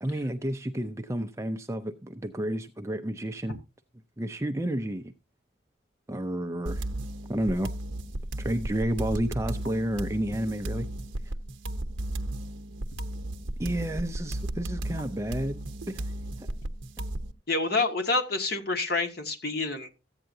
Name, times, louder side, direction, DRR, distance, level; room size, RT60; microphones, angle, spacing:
voice 1, 0.0-3.6 4.2-5.1 6.1-6.8 7.3-7.7 8.4-10.9 13.6-16.1 16.4-16.5, right 1 dB, 15° right, 0.5 m, -31 dB
sound 1, 6.7-17.3, right 1 dB, 70° right, 0.9 m, -35 dB
voice 2, 17.5-19.9, left 3 dB, 50° left, 1.8 m, -27 dB
14.5 x 8.9 x 2.7 m
head